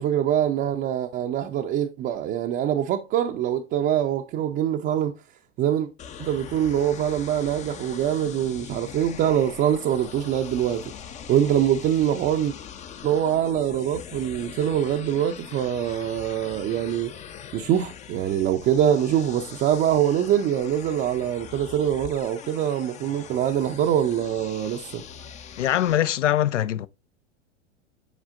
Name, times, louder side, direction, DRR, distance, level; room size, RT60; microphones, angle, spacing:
voice 1, 0.0-5.1 5.6-5.9 6.2-10.9 11.3-12.5 13.0-17.1 17.5-25.0, right 10 dB, 25° right, 0.5 m, -24 dB
sound 1, 6.0-26.0, left 8 dB, 20° left, 0.5 m, -42 dB
voice 2, 25.6-26.9, left 12 dB, 80° left, 0.5 m, -22 dB
8.1 x 4.8 x 2.4 m
hypercardioid pair, 95°, 36 cm